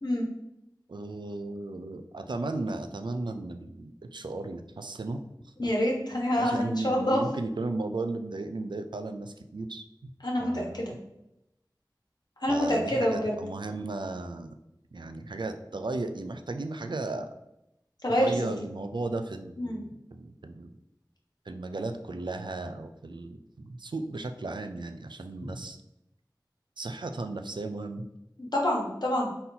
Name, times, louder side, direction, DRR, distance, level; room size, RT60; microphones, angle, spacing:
voice 1, 0.9-5.2 5.6-5.7 6.4-10.1 10.4-11.0 12.5-14.6 14.9-17.3 18.1-20.7 21.5-25.8 26.8-28.1, right 2 dB, 80° right, 8 dB, 0.4 m, -35 dB
voice 2, 5.6-7.2 10.2-10.9 12.4-13.4 18.0-18.3 19.6-19.8 28.5-29.3, equal, 65° left, -2 dB, 1.1 m, -27 dB
4.2 x 2.7 x 3.8 m, 0.87 s
wide cardioid pair, 45°, 8 cm